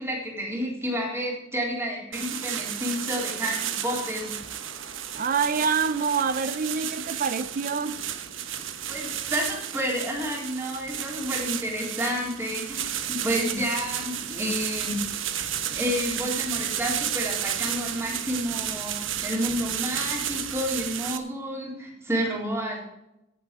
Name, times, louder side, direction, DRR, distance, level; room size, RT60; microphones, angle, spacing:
voice 1, 0.0-4.4 8.9-15.1 15.7-22.8, equal, 15° right, -2 dB, 3.9 m, -30 dB
sound 1, 2.1-21.2, right 10 dB, 75° right, 1.2 m, -32 dB
voice 2, 5.1-8.0, right 5 dB, 45° right, 13 dB, 0.5 m, -26 dB
17.0 x 7.7 x 4.8 m, 0.89 s
head